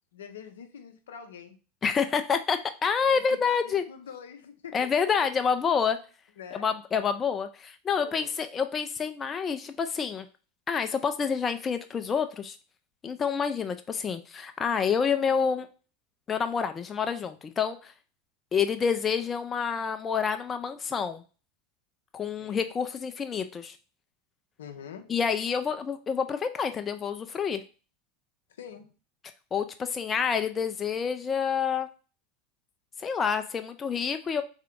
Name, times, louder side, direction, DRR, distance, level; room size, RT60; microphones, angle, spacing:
voice 1, 0.1-1.6 3.1-4.9 6.4-6.7 8.0-8.3 22.4-22.6 24.6-25.1 28.6-28.9, left 7 dB, 75° left, 7 dB, 0.6 m, -44 dB
voice 2, 1.8-3.8 4.7-6.0 6.5-10.3 10.7-12.6 13.0-15.7 16.3-17.9 18.5-21.2 22.1-23.8 25.1-27.6 29.5-31.9 33.0-34.4, left 6 dB, 30° left, 8 dB, 0.4 m, -28 dB
3.7 x 3.5 x 3.5 m, 0.35 s
figure-of-eight pair, 80°, 0 cm